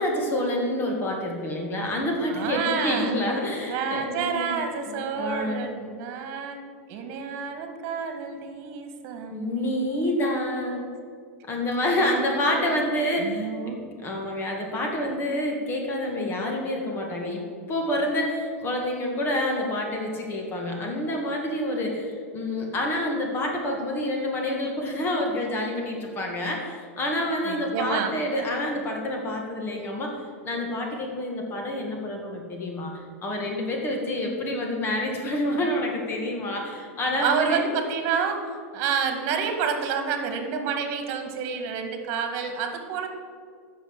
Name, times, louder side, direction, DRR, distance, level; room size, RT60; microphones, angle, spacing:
voice 1, 0.0-4.6 4.9-5.6 9.3-10.9 11.5-13.8 14.0-30.1 30.4-32.9 33.2-37.6, left 1 dB, 30° left, 1 dB, 2.0 m, -28 dB
voice 2, 2.3-3.2 3.6-10.5 12.0-12.9 13.2-13.8 27.4-28.1 37.2-43.1, right 6 dB, 50° right, 6 dB, 1.8 m, -29 dB
8.0 x 6.6 x 8.1 m, 2.1 s
hypercardioid pair, 120°, 8 cm